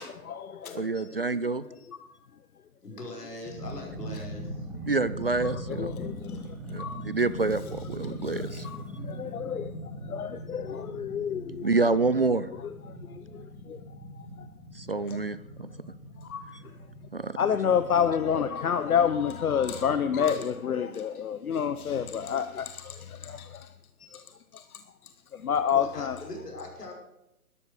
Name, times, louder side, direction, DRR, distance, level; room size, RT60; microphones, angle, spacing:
voice 1, 0.0-1.0 5.8-6.4 6.8-7.0 8.2-9.7 10.1-11.7 13.7-13.8 16.3-16.5 17.4-23.7 24.1-24.2 24.5-24.6 25.4-26.1, left 8 dB, 65° left, 0.9 m, -29 dB
voice 2, 0.7-1.6 4.9-5.9 6.7-8.7 11.6-12.5 14.8-15.7 17.1-17.4, right 3 dB, 40° right, 0.4 m, -27 dB
voice 3, 2.8-4.7 25.7-26.9, left 1 dB, 85° left, 5.8 m, -41 dB
sound 1, 3.5-18.3, equal, ahead, 1.1 m, -40 dB
13.0 x 12.0 x 6.6 m
hypercardioid pair, 165°, 46 cm